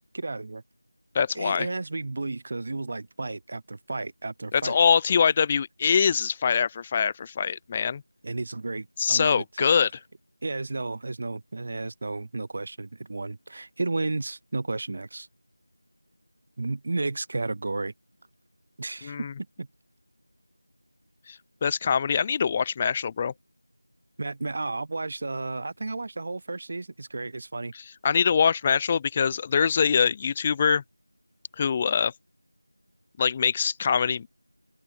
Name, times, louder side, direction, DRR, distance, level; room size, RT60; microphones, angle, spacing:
voice 1, 0.1-0.6 1.4-4.8 8.2-9.7 10.4-15.3 16.6-17.9 18.8-19.3 19.6-19.7 24.2-27.7, right 3 dB, 30° right, 7.3 m, -32 dB
voice 2, 1.1-1.7 4.5-8.0 9.0-9.9 19.0-19.3 21.3-23.3 28.0-30.8 31.6-32.1 33.2-34.3, left 6 dB, 15° left, 0.9 m, -23 dB
open air
figure-of-eight pair, 175°, 0 cm